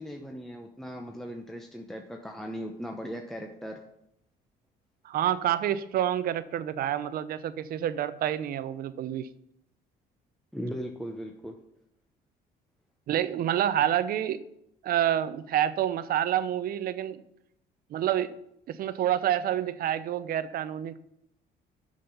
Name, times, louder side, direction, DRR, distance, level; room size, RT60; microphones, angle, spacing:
voice 1, 0.0-3.8 10.5-11.5, equal, ahead, 2 dB, 0.8 m, -38 dB
voice 2, 5.0-9.3 13.1-14.4 14.8-17.2 17.9-18.3 18.7-21.0, right 11 dB, 60° right, 13 dB, 0.7 m, -28 dB
7.7 x 6.4 x 5.5 m, 0.78 s
cardioid pair, 110°, 17 cm